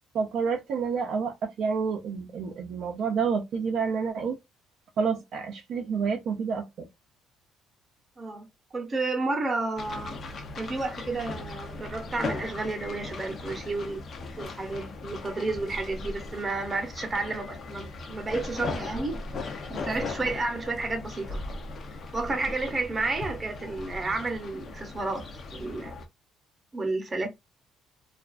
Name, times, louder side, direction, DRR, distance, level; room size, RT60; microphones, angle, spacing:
voice 1, 0.1-4.4 5.0-6.9, right 5 dB, 55° right, 0.5 m, -29 dB
voice 2, 8.2-10.2 10.6-14.0 14.4-19.2 19.7-21.4 22.1-25.2 25.5-26.0 26.7-27.3, right 3 dB, 20° right, 0.8 m, -31 dB
sound 1, 9.8-26.1, left 3 dB, 40° left, 0.5 m, -38 dB
2.4 x 2.3 x 2.3 m
cardioid pair, 145°, 0 cm